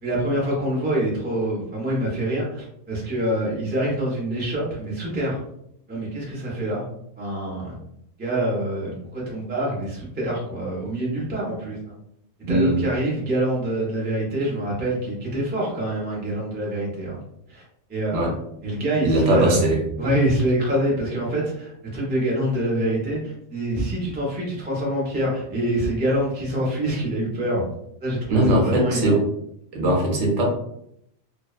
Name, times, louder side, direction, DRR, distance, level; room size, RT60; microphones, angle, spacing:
voice 1, 0.0-5.4 5.9-6.8 7.2-7.8 8.2-11.8 12.5-17.2 17.5-17.6 17.9-18.3 18.6-19.7 20.0-27.6 28.0-29.2, right 1 dB, 15° right, -4 dB, 0.3 m, -25 dB
voice 2, 12.4-12.8 18.1-18.3 19.0-19.8 28.3-29.2 29.7-30.4, right 1 dB, 65° right, -1 dB, 0.9 m, -20 dB
2.7 x 2.1 x 2.3 m, 0.74 s
omnidirectional pair, 1.4 m